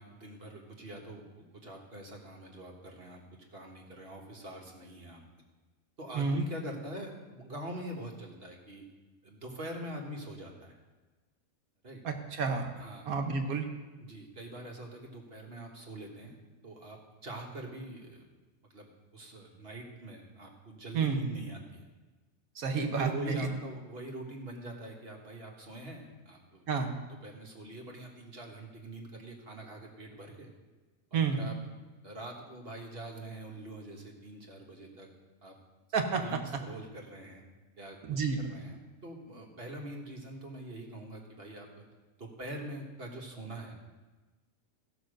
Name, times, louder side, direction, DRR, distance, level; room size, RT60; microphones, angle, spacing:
voice 1, 0.0-3.2 3.5-5.2 6.0-8.8 9.2-10.7 11.8-12.0 12.8-13.1 14.0-16.3 16.6-18.2 18.7-21.8 23.0-26.7 27.2-30.5 31.1-31.5 32.0-35.1 35.4-35.5 36.2-37.4 37.8-38.8 39.0-41.8 42.2-43.7, right 1 dB, 45° right, 1 dB, 1.7 m, -44 dB
voice 2, 12.0-12.7 13.1-13.6 20.9-21.2 22.6-23.5 26.7-26.9 31.1-31.4 35.9-36.4 38.1-38.4, right 5 dB, 90° right, 5 dB, 1.6 m, -30 dB
15.5 x 5.8 x 6.5 m, 1.3 s
omnidirectional pair, 1.5 m